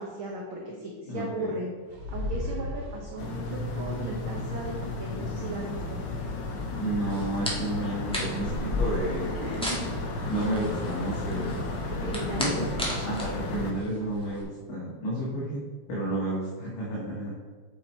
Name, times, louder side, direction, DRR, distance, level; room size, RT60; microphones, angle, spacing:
voice 1, 0.0-1.7 2.1-4.7 5.0-6.0 9.4-9.9 12.0-12.6, right 1 dB, 70° right, -1 dB, 1.2 m, -36 dB
voice 2, 1.1-1.6 6.8-9.6 10.3-11.6 12.3-12.7 13.0-15.6 15.9-17.3, right 1 dB, 60° left, -6 dB, 2.7 m, -31 dB
sound 1, 1.9-3.5, left 2 dB, 40° right, 1.5 m, -34 dB
sound 2, 3.2-13.7, left 2 dB, 85° left, 1.0 m, -33 dB
sound 3, 7.1-14.4, left 1 dB, 10° left, 0.3 m, -35 dB
8.4 x 5.8 x 4.5 m, 1.5 s
omnidirectional pair, 3.6 m